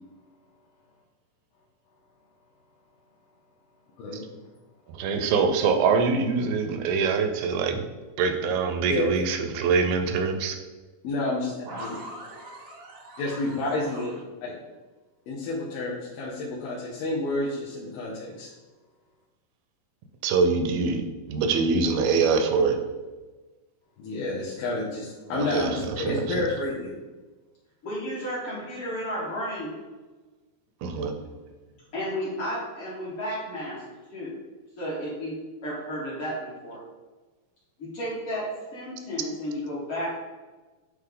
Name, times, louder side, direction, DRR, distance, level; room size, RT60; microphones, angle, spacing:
voice 1, 4.0-4.3 8.9-9.1 11.0-11.9 13.2-14.1 14.4-14.6 15.3-18.5 24.0-26.9, left 2 dB, 75° left, -5 dB, 2.6 m, -30 dB
voice 2, 4.9-7.8 8.2-10.6 20.2-22.8 25.3-26.4 30.8-31.1, right 5 dB, 80° right, 6 dB, 2.3 m, -24 dB
voice 3, 11.6-14.1 30.8-31.3, right 1 dB, 45° right, -3 dB, 1.0 m, -42 dB
voice 4, 27.8-29.7 31.9-33.8 34.1-34.3 34.8-35.4 35.6-36.8 37.8-40.2, equal, 45° left, -7 dB, 2.0 m, -32 dB
9.2 x 3.2 x 3.8 m, 1.3 s
omnidirectional pair, 4.3 m